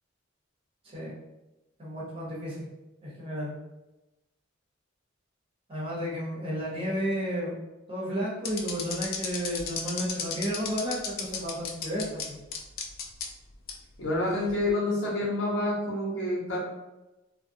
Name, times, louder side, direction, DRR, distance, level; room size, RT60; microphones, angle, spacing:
voice 1, 1.8-2.7 3.0-3.5 5.7-7.5 7.9-12.4, equal, 30° right, -6 dB, 0.9 m, -32 dB
sound 1, 8.4-12.3 12.5-13.3 13.7-13.8 14.4-14.7, left 6 dB, 50° left, 0.3 m, -33 dB
voice 2, 14.0-16.6, left 1 dB, 70° left, -4 dB, 0.9 m, -28 dB
2.3 x 2.1 x 2.6 m, 1.0 s
head